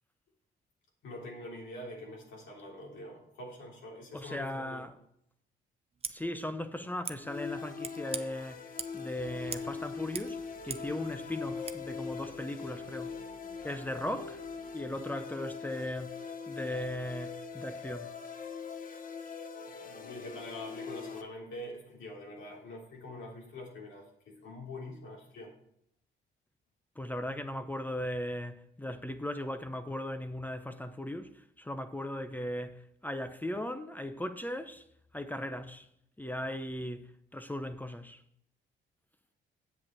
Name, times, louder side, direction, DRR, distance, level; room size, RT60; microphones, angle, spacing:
voice 1, 1.0-4.8 19.3-25.5, left 1 dB, 75° left, 3.3 m, -45 dB
voice 2, 4.1-5.0 6.1-13.2 13.6-14.4 14.7-18.1 27.0-34.9 35.1-35.9 36.2-38.2, left 1 dB, 10° left, 0.6 m, -38 dB
Scissors, 5.9-6.2 7.0-7.2 7.8-8.2 8.8-9.0 9.5-9.7 10.0-10.9 11.6-11.8, right 5 dB, 30° right, 0.7 m, -40 dB
sound 1, 7.2-21.2, left 5 dB, 45° left, 1.0 m, -42 dB
Male speech man speaking / Child speech kid speaking / Chatter, 9.1-15.1, right 5 dB, 75° right, 1.0 m, -59 dB
7.8 x 7.7 x 4.5 m
cardioid pair, 90°, 20 cm